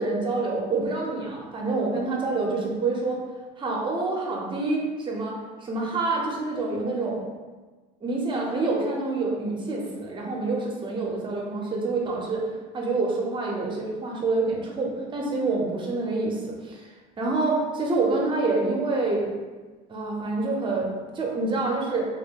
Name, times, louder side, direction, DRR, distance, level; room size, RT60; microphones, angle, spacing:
voice 1, 0.0-3.2 3.6-5.3 5.6-7.2 8.0-16.9 17.2-19.3 19.9-22.1, right 3 dB, 25° right, -2 dB, 0.7 m, -27 dB
3.5 x 2.1 x 3.6 m, 1.3 s
cardioid pair, 120°, 19 cm